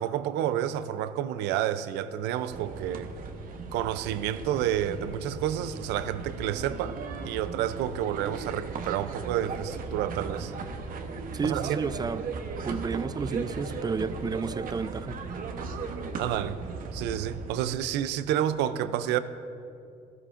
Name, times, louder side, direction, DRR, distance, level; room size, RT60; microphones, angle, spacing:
voice 1, 0.0-3.1 3.7-7.0 7.2-10.5 11.4-11.8 16.2-16.6 16.9-19.2, right 11 dB, 90° right, 13 dB, 0.5 m, -29 dB
sound 1, 2.5-17.6, right 4 dB, 55° right, 1.0 m, -37 dB
voice 2, 11.3-12.2 12.6-15.2, right 5 dB, 25° right, 14 dB, 0.4 m, -31 dB
17.5 x 13.5 x 2.5 m, 2.6 s
cardioid pair, 110°, 17 cm